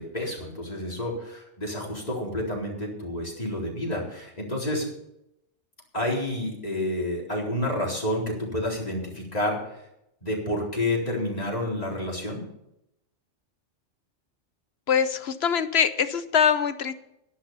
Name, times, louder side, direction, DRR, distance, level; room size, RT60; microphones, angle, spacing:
voice 1, 0.0-4.9 5.9-9.8 10.2-12.4, left 1 dB, 35° left, -3 dB, 4.2 m, -29 dB
voice 2, 14.9-16.9, left 7 dB, 60° left, 12 dB, 1.1 m, -23 dB
12.0 x 11.5 x 5.7 m, 0.83 s
omnidirectional pair, 1.2 m